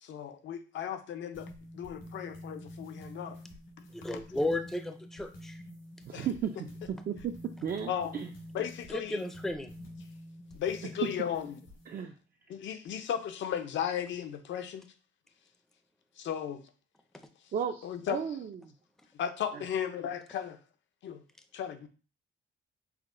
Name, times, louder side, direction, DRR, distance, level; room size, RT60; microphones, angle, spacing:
voice 1, 0.0-3.4 6.1-6.3 7.9-8.1 8.5-9.2 10.5-11.6 12.5-14.8 16.2-16.6 17.8-18.2 19.2-20.6 21.0-21.2 21.5-21.9, left 9 dB, 70° left, 0.7 m, -35 dB
sound 1, 1.3-12.0, left 1 dB, 85° left, 2.2 m, -48 dB
voice 2, 3.9-5.6 8.9-9.7, left 1 dB, ahead, 0.5 m, -34 dB
voice 3, 6.0-6.6 6.9-7.4 7.6-8.3 11.0-11.1 11.9-12.1 17.5-18.7 19.5-19.6, right 8 dB, 50° right, 0.5 m, -34 dB
5.7 x 2.2 x 3.8 m
cardioid pair, 90°, 20 cm